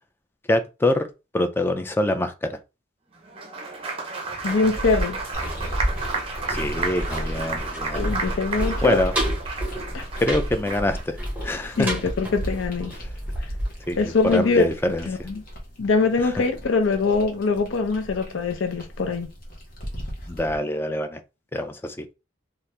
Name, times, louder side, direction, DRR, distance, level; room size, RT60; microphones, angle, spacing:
voice 1, 0.5-1.1 1.3-2.6 6.5-8.1 8.8-9.2 10.2-11.9 13.0-13.1 13.9-15.3 16.2-16.3 20.3-21.2 21.5-22.1, left 1 dB, 10° left, 0.3 m, -25 dB
Applause, 3.2-11.0, right 3 dB, 30° right, 0.6 m, -32 dB
sound 1, 4.2-15.1 15.4-15.5, equal, 10° right, 0.9 m, -31 dB
voice 2, 4.4-5.2 7.9-9.0 9.9-10.0 11.8-12.9 14.0-14.7 15.1-15.3 15.8-19.3, left 4 dB, 90° left, 0.5 m, -23 dB
sound 2, 5.3-20.6, equal, 50° left, 1.0 m, -38 dB
2.8 x 2.5 x 3.2 m
head